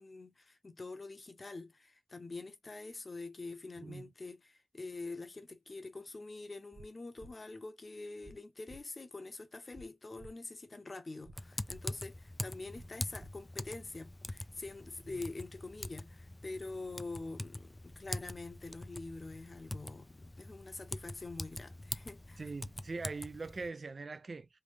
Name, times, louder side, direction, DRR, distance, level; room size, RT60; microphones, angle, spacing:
voice 1, 0.0-22.4, left 3 dB, 45° left, 0.9 m, -45 dB
sound 1, 6.7-6.9 7.2-7.3 8.2-8.4 8.7-8.8 9.7-9.9 10.2-10.3 11.2-11.4 11.7-11.8 12.7-12.9 13.2-13.3, right 1 dB, 30° right, 0.7 m, -52 dB
Typing, 11.4-23.7, left 1 dB, 25° left, 0.4 m, -44 dB
voice 2, 22.4-24.5, right 3 dB, 55° right, 0.4 m, -42 dB
3.4 x 2.3 x 3.4 m
cardioid pair, 55°, 0 cm